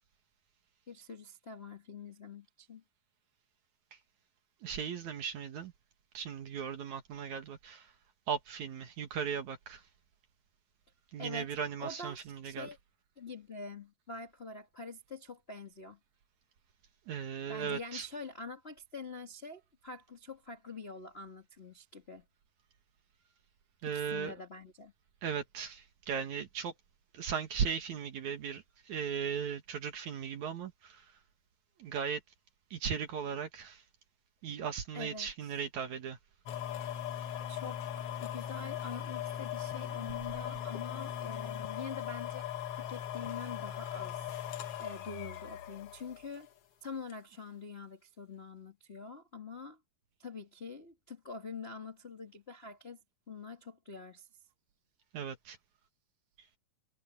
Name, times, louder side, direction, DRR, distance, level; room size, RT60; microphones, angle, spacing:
voice 1, 0.9-2.8 11.2-12.8 13.2-16.0 17.5-22.2 23.9-24.9 34.9-35.3 37.5-42.4 42.7-44.4 44.8-46.5 46.8-49.8 50.2-53.0 53.3-54.3, left 4 dB, 40° left, 0.8 m, -45 dB
voice 2, 4.6-5.7 6.1-7.9 8.3-9.8 11.1-12.7 17.1-18.1 23.8-24.3 25.2-26.7 27.1-31.1 31.8-32.2 32.7-33.8 34.4-36.2 55.1-55.6, right 7 dB, 55° right, 2.5 m, -37 dB
sound 1, 36.5-46.5 47.1-47.2, left 10 dB, 70° left, 1.3 m, -39 dB
omnidirectional pair, 4.6 m